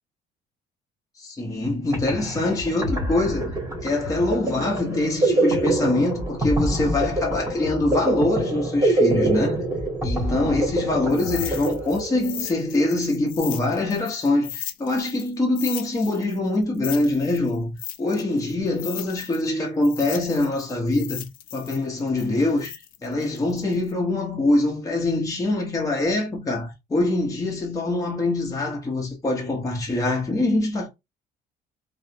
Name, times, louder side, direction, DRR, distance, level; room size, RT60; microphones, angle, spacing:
voice 1, 1.2-3.6 3.8-9.6 10.0-21.2 21.5-30.9, left 2 dB, 20° left, 0.9 m, -24 dB
sound 1, 1.6-1.7 1.9-12.5, right 1 dB, 20° right, 1.4 m, -25 dB
sound 2, 11.1-15.3 15.6-19.5 19.8-23.9, left 11 dB, 60° left, 0.4 m, -37 dB
3.1 x 2.0 x 2.8 m
cardioid pair, 110°, 17 cm